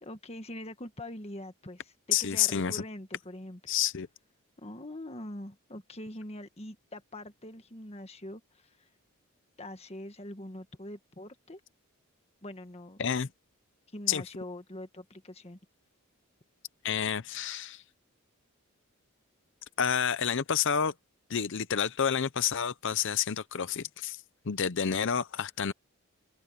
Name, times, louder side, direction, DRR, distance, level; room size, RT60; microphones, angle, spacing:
voice 1, 0.0-3.7 4.6-8.9 9.6-11.6 12.4-13.0 13.9-15.6, left 1 dB, 30° left, 1.6 m, -43 dB
voice 2, 2.1-2.8 3.7-4.1 13.0-13.3 14.1-14.2 16.8-17.8 19.8-20.9 21.3-24.2 24.5-25.7, left 8 dB, 55° left, 0.6 m, -29 dB
open air
head